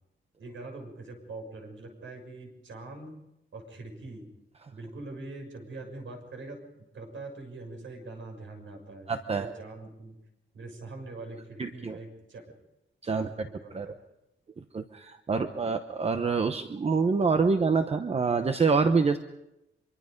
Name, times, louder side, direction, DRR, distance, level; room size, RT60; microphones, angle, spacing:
voice 1, 0.4-3.2 3.5-4.3 4.7-10.2 10.5-12.4 13.1-14.0 15.4-15.6, right 2 dB, 70° right, 4 dB, 6.3 m, -43 dB
voice 2, 9.1-9.5 11.6-12.0 13.0-13.5 13.7-13.9 14.7-19.2, right 4 dB, 30° right, 7 dB, 0.9 m, -26 dB
25.5 x 23.5 x 5.3 m, 0.90 s
wide cardioid pair, 165°, 20 cm